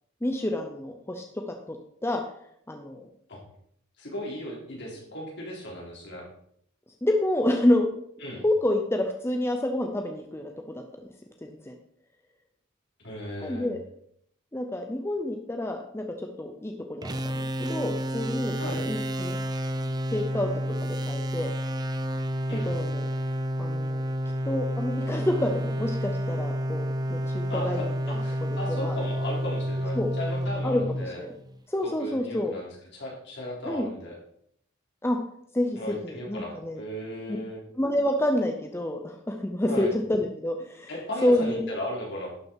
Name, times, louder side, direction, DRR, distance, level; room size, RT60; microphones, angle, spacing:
voice 1, 0.2-1.8 2.0-2.2 2.7-3.1 7.0-7.9 8.4-11.1 11.4-11.7 13.4-13.8 14.5-19.4 20.1-20.5 20.8-21.5 22.5-23.0 23.6-24.0 24.5-27.9 28.4-29.0 29.9-30.1 30.6-31.3 31.7-32.5 33.7-33.9 35.0-35.2 35.5-36.8 37.8-40.9 41.2-41.6, left 1 dB, 10° left, 3 dB, 0.8 m, -28 dB
voice 2, 4.0-6.3 8.2-8.4 13.0-13.7 18.6-18.8 22.5-22.7 27.5-31.2 31.8-34.2 35.8-37.6 39.6-39.9 40.9-42.3, left 1 dB, 60° left, -2 dB, 3.6 m, -36 dB
sound 1, 17.0-31.6, equal, 20° right, 0.6 m, -30 dB
11.5 x 6.3 x 4.5 m, 0.68 s
head